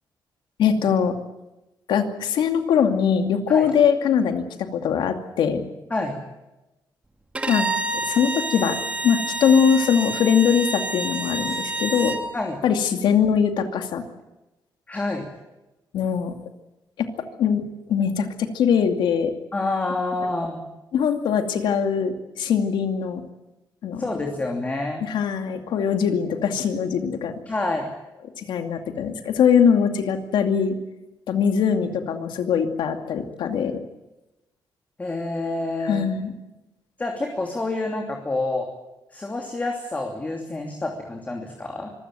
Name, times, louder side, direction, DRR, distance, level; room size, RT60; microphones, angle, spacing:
voice 1, 0.6-1.2 1.9-5.6 7.5-7.7 7.9-8.8 9.0-12.2 12.6-14.0 15.9-16.3 17.0-17.1 17.4-17.6 17.9-19.3 20.9-23.2 23.8-24.0 25.1-27.3 28.4-30.8 31.3-33.8 35.8-36.3, left 7 dB, 90° left, 6 dB, 2.5 m, -21 dB
Bowed string instrument, 7.3-12.2, right 2 dB, 15° right, 2.7 m, -28 dB
voice 2, 14.9-15.3 19.5-20.7 24.0-25.0 27.5-27.9 35.0-36.1 37.0-38.7 39.1-41.9, left 2 dB, 20° left, 2 dB, 2.9 m, -28 dB
25.0 x 16.0 x 9.1 m, 1.0 s
cardioid pair, 130°, 8 cm